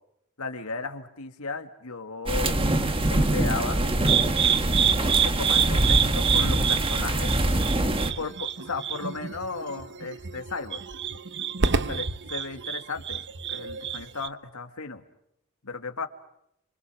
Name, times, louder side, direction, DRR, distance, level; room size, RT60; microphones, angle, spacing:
voice 1, 0.4-2.6 3.1-3.9 5.1-7.3 8.2-10.8 11.7-15.0 15.6-16.1, left 4 dB, 85° left, 5 dB, 2.2 m, -35 dB
sound 1, 2.3-8.1, right 1 dB, 25° right, 1.6 m, -24 dB
sound 2, 4.1-14.3, right 7 dB, 55° right, 1.0 m, -27 dB
30.0 x 26.0 x 6.4 m, 0.78 s
head